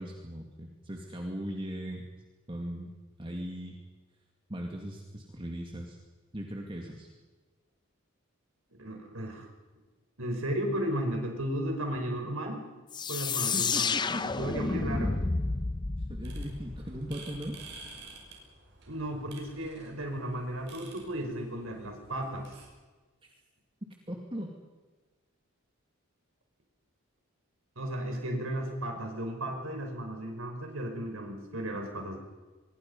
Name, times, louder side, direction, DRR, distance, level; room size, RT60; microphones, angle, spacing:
voice 1, 0.0-2.0 2.5-2.9 3.2-3.8 4.5-6.0 6.3-7.1 13.5-14.3 16.1-17.6 24.1-24.5, equal, 25° right, 1 dB, 2.4 m, -38 dB
voice 2, 8.8-9.5 10.2-12.7 13.1-13.9 14.2-15.2 18.9-22.5 27.8-32.2, right 1 dB, 80° right, 3 dB, 5.4 m, -34 dB
sound 1, 12.9-17.5, left 4 dB, 20° left, 0.6 m, -31 dB
sound 2, 16.2-22.7, right 3 dB, 55° right, 6.5 m, -51 dB
25.0 x 22.5 x 5.6 m, 1.3 s
head